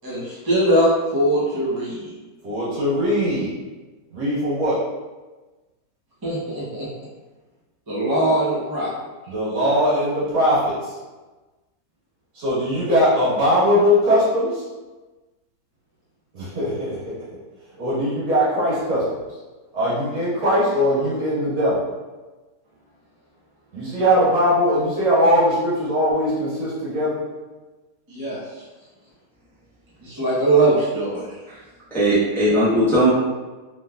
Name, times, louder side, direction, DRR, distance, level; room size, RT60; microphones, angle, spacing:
voice 1, 0.0-2.1 6.2-6.9 7.9-8.9 28.1-28.4 30.0-31.3, right 1 dB, 25° right, -7 dB, 0.4 m, -21 dB
voice 2, 2.4-3.5 4.1-4.8 9.3-11.0 12.4-14.6 16.3-17.1 17.8-19.0 19.7-21.8 23.7-27.2, equal, 75° right, -9 dB, 1.8 m, -20 dB
voice 3, 31.9-33.1, right 1 dB, ahead, -11 dB, 0.9 m, -18 dB
3.2 x 3.2 x 2.3 m, 1.2 s
omnidirectional pair, 1.7 m